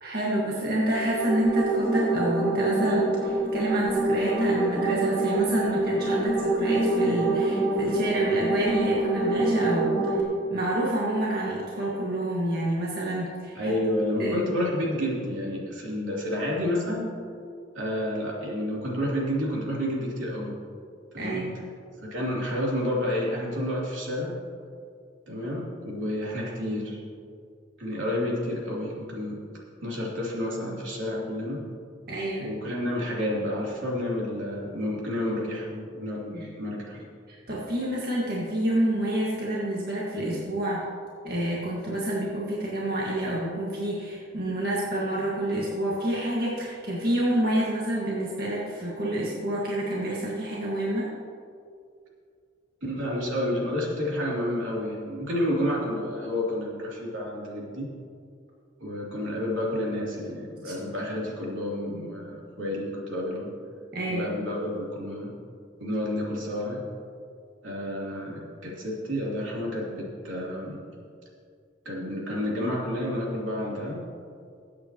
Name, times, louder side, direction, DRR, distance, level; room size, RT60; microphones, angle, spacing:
voice 1, 0.0-10.2 10.5-13.8 14.2-14.4 21.2-21.6 32.1-32.5 36.3-36.5 37.3-40.9 41.2-51.1 60.6-60.7 63.9-64.3, right 1 dB, 50° right, -6 dB, 1.8 m, -28 dB
sound 1, 0.8-10.2, right 2 dB, 10° left, 2.1 m, -26 dB
voice 2, 13.5-17.1 17.7-20.5 21.1-21.4 22.0-24.4 25.3-27.0 27.8-29.4 29.8-31.6 32.4-37.1 52.8-57.9 58.8-63.5 64.1-65.3 65.8-66.8 67.6-70.8 71.8-74.0, left 1 dB, 80° right, -4 dB, 3.2 m, -30 dB
21.0 x 8.6 x 3.0 m, 2.2 s
head